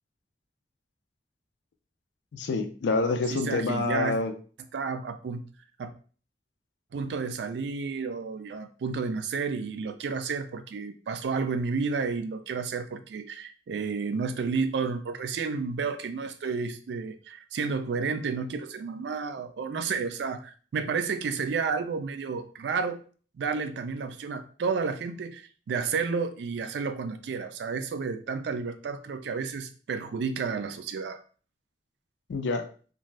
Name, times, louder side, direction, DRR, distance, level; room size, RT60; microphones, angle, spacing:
voice 1, 2.3-4.3 32.3-32.7, left 3 dB, 85° left, 5 dB, 0.4 m, -27 dB
voice 2, 3.3-4.2 4.7-5.4 5.8-5.9 6.9-23.0 23.3-31.2, right 5 dB, 70° right, 9 dB, 0.3 m, -31 dB
2.6 x 2.2 x 3.1 m, 0.40 s
head